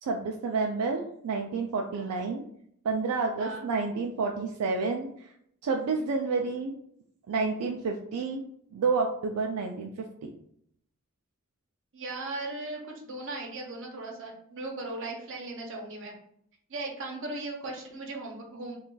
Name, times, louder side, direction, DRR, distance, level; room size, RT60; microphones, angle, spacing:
voice 1, 0.0-2.4 2.8-5.3 5.6-6.7 7.3-8.4 8.7-10.3, right 4 dB, 85° right, 2 dB, 0.3 m, -29 dB
voice 2, 11.9-16.2 16.7-18.8, right 2 dB, 55° right, 0 dB, 0.7 m, -38 dB
2.4 x 2.3 x 3.8 m, 0.70 s
head